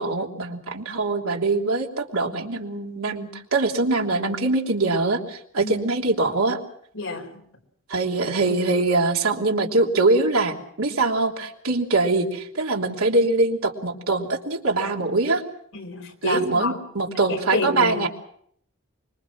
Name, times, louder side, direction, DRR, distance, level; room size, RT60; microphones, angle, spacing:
voice 1, 0.0-6.6 7.9-15.4 16.2-18.1, right 3 dB, 85° right, 1 dB, 3.1 m, -23 dB
voice 2, 6.9-7.4 15.7-16.8 17.3-18.0, left 2 dB, 65° left, 5 dB, 4.4 m, -28 dB
25.5 x 23.0 x 6.0 m, 0.67 s
head